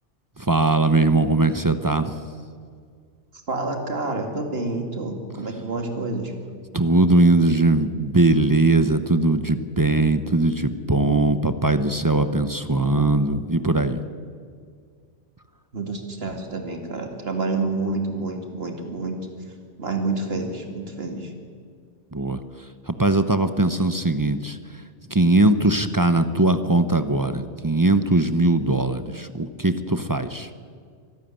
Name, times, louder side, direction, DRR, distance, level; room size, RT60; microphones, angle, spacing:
voice 1, 0.4-2.1 6.7-14.0 22.1-22.4 22.9-24.6 25.1-30.5, right 2 dB, 20° right, 11 dB, 0.7 m, -20 dB
voice 2, 3.5-6.3 15.7-19.2 19.8-21.3, right 3 dB, 55° right, 4 dB, 2.5 m, -28 dB
25.0 x 11.5 x 9.1 m, 2.1 s
omnidirectional pair, 1.2 m